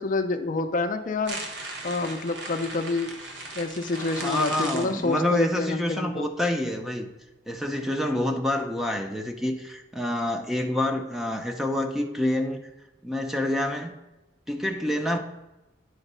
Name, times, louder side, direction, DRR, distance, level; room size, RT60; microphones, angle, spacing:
voice 1, 0.0-1.4 1.8-3.1 3.6-6.3, left 3 dB, 45° left, 7 dB, 0.5 m, -28 dB
sound 1, 1.3-5.4, right 2 dB, 80° right, 1.2 m, -37 dB
voice 2, 4.2-7.1 7.5-12.6 13.0-13.9 14.5-15.2, left 1 dB, ahead, 4 dB, 0.6 m, -27 dB
9.0 x 4.0 x 5.5 m, 0.96 s
head